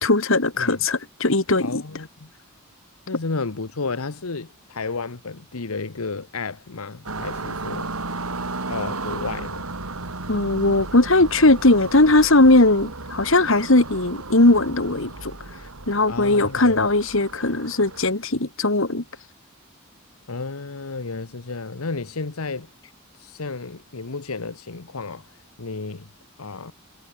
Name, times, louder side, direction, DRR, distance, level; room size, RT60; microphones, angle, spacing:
voice 1, 0.0-1.8 10.3-15.3 15.9-19.0, left 2 dB, 65° left, 2.1 m, -18 dB
voice 2, 1.6-2.3 3.1-7.9 8.7-9.6 16.1-16.9 20.3-22.7 23.2-25.3 25.6-26.1 26.4-26.7, left 4 dB, 85° left, 1.1 m, -32 dB
sound 1, 7.1-18.1, right 3 dB, 85° right, 3.2 m, -34 dB
head